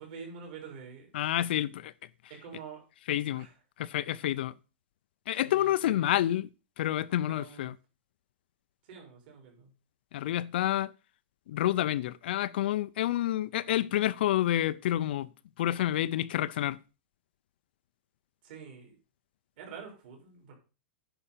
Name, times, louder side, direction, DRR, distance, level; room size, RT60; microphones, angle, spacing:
voice 1, 0.0-1.1 2.4-2.8 3.3-3.5 5.4-6.2 7.2-7.7 8.9-9.7 18.4-18.9 19.6-20.5, right 6 dB, 45° right, 4.5 m, -46 dB
voice 2, 1.1-1.9 3.1-3.5 3.8-4.5 5.3-6.5 6.8-7.8 10.1-10.9 11.5-15.3 15.6-16.8, left 13 dB, 55° left, 0.5 m, -28 dB
9.9 x 5.6 x 6.6 m
supercardioid pair, 170°, 7 cm